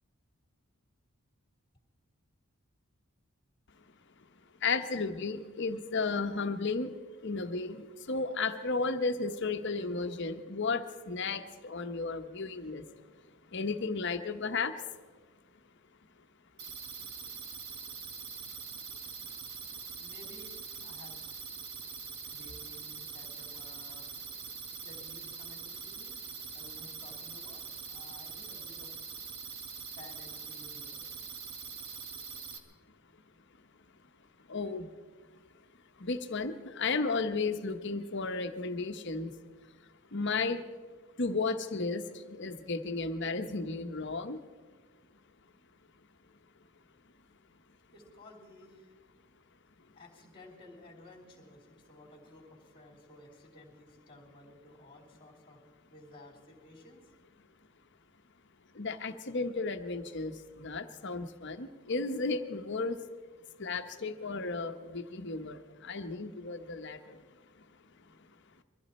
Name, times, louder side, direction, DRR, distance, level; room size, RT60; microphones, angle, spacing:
voice 1, 4.6-7.0 7.2-12.8 13.5-14.8 34.5-34.9 36.0-39.3 40.1-40.7 41.2-44.4 58.7-63.0 63.6-67.2 67.6-67.7 68.1-68.2, left 4 dB, 50° left, 8 dB, 1.0 m, -34 dB
sound 1, 16.6-32.6, right 6 dB, 45° right, 1.3 m, -43 dB
voice 2, 18.9-19.4 20.0-21.3 21.5-22.0 22.3-24.1 24.4-26.2 26.5-29.1 30.0-31.0 47.9-49.0 49.9-55.6 55.9-57.1, left 1 dB, 25° left, -6 dB, 3.1 m, -55 dB
23.0 x 14.5 x 4.3 m, 1.4 s
head